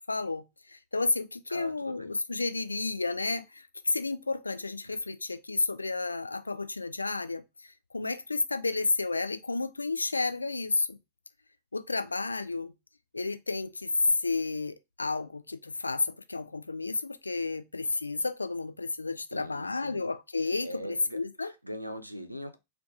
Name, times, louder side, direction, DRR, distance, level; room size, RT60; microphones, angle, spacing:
voice 1, 0.1-0.4 0.7-11.0 11.7-12.7 13.1-21.5, left 3 dB, 80° left, 0.3 m, -31 dB
voice 2, 1.5-2.1 4.8-4.9 19.3-20.1 20.4-22.6, equal, 90° right, 0.4 m, -41 dB
2.5 x 2.3 x 3.7 m
figure-of-eight pair, 90°, 0 cm